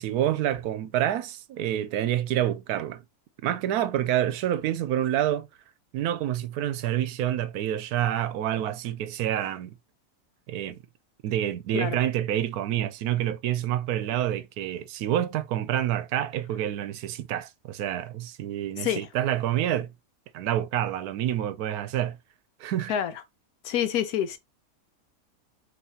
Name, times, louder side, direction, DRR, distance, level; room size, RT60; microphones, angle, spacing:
voice 1, 0.0-3.0 3.4-5.5 5.9-9.7 10.5-10.8 11.2-19.9 20.3-22.2 22.6-22.9, right 11 dB, 80° right, 1.1 m, -28 dB
voice 2, 18.8-19.1 22.9-23.1 23.6-24.4, left 10 dB, 80° left, 1.2 m, -27 dB
5.5 x 3.1 x 2.7 m
omnidirectional pair, 1.6 m